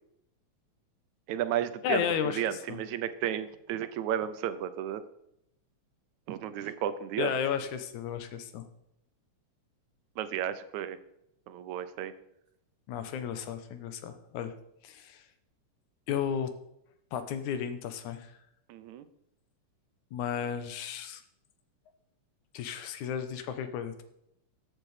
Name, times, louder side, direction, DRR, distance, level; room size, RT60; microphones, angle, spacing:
voice 1, 1.3-5.0 6.3-7.3 10.2-11.0 11.5-12.1 18.7-19.1, right 10 dB, 80° right, 12 dB, 2.1 m, -33 dB
voice 2, 1.8-2.8 6.6-6.7 7.2-8.6 12.9-14.5 14.8-15.2 16.1-16.5 17.1-18.3 20.1-21.2 22.5-24.0, left 8 dB, 85° left, 10 dB, 2.5 m, -33 dB
13.5 x 7.7 x 4.9 m, 0.78 s
omnidirectional pair, 3.3 m